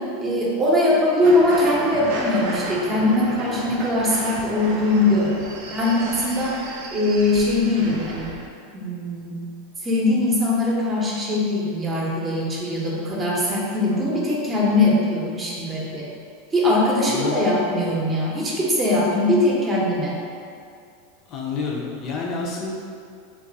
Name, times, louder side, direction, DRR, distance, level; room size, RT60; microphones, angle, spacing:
voice 1, 0.2-5.3 5.7-6.6 6.9-8.3 8.7-9.4 9.8-16.1 16.5-20.2, left 2 dB, 25° right, -4 dB, 0.7 m, -21 dB
sound 1, 1.2-8.5, right 3 dB, 60° right, 0.4 m, -33 dB
voice 2, 21.3-22.7, left 4 dB, 45° left, -2 dB, 0.5 m, -28 dB
2.4 x 2.2 x 3.9 m, 2.4 s
hypercardioid pair, 105°, 0 cm